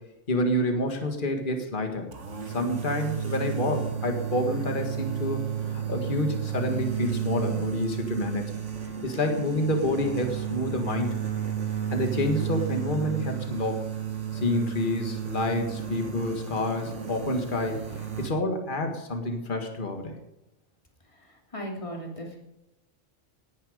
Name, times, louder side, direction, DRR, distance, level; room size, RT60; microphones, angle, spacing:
voice 1, 0.3-2.1 2.5-5.4 5.7-8.6 9.0-11.2 11.9-13.9 14.3-17.8 18.2-20.2, left 1 dB, 40° left, 4 dB, 2.0 m, -28 dB
sound 1, 2.1-18.3, right 9 dB, 60° right, 1.9 m, -32 dB
voice 2, 21.5-22.4, equal, 25° left, 0 dB, 3.0 m, -36 dB
18.5 x 10.5 x 5.1 m, 0.90 s
omnidirectional pair, 1.4 m